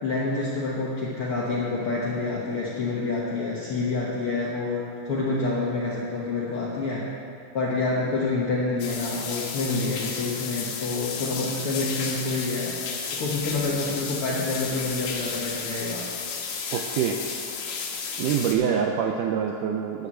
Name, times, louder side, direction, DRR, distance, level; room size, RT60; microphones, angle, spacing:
voice 1, 0.0-7.0 7.5-12.8 13.1-16.1, left 3 dB, 65° left, -5 dB, 1.4 m, -28 dB
sound 1, 8.8-18.6, left 5 dB, 80° left, 3.1 m, -33 dB
voice 2, 16.7-17.2 18.2-20.1, right 8 dB, 85° right, 2 dB, 1.8 m, -25 dB
11.5 x 6.8 x 7.7 m, 2.5 s
omnidirectional pair, 4.2 m